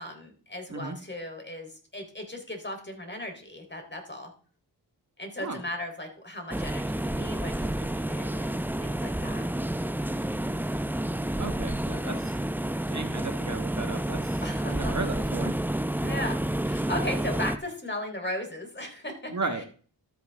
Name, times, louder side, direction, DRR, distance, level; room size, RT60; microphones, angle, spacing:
voice 1, 0.0-4.3 5.2-9.5 14.4-14.9 16.0-16.4 16.6-19.3 19.6-19.7, left 1 dB, 25° left, 3 dB, 3.7 m, -37 dB
sound 1, 6.5-17.6, right 1 dB, 5° right, 0.7 m, -30 dB
voice 2, 11.4-12.3 12.9-14.4 14.7-15.5 19.3-19.6, right 3 dB, 40° right, 6 dB, 1.5 m, -34 dB
13.0 x 8.4 x 3.5 m, 0.41 s
cardioid pair, 50°, 43 cm